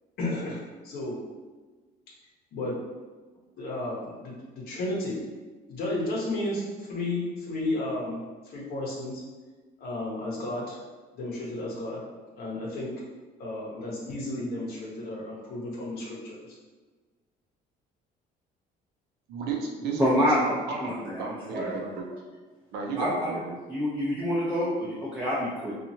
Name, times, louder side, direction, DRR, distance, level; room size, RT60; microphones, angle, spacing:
voice 1, 0.2-1.2 2.5-2.8 3.6-5.2 5.7-9.2 9.8-10.8 11.1-12.0 12.3-12.9 13.4-16.4, left 2 dB, 65° left, -5 dB, 0.8 m, -33 dB
voice 2, 19.3-21.6 22.0-22.1 22.7-23.5, right 4 dB, 75° right, 0 dB, 0.6 m, -33 dB
voice 3, 20.0-20.4 20.8-21.7 23.0-23.3 23.7-25.7, equal, 10° right, -8 dB, 0.6 m, -27 dB
2.8 x 2.3 x 2.7 m, 1.3 s
cardioid pair, 110°, 17 cm